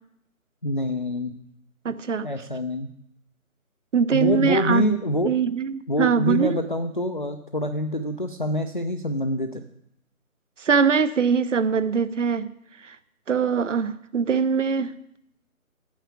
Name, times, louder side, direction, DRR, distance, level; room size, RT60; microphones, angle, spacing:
voice 1, 0.6-1.3 2.2-2.9 4.1-5.4 5.9-9.6, left 1 dB, 35° left, 7 dB, 0.4 m, -26 dB
voice 2, 1.8-2.3 3.9-4.9 5.2-6.5 10.6-12.5 12.9-13.0 13.3-14.9, right 6 dB, 55° right, 14 dB, 0.8 m, -22 dB
9.1 x 6.7 x 8.4 m, 0.74 s
figure-of-eight pair, 165°, 44 cm